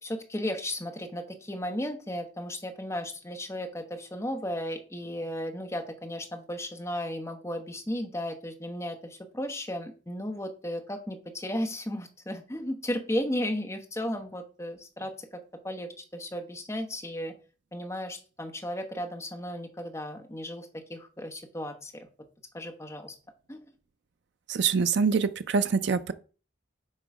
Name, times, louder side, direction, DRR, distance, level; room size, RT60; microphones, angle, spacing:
voice 1, 0.0-17.4 17.7-22.1 22.5-23.1 23.5-23.7, left 1 dB, 15° left, 0.8 m, -35 dB
voice 2, 24.5-26.1, right 5 dB, 60° right, 0.4 m, -25 dB
7.4 x 3.0 x 4.7 m
head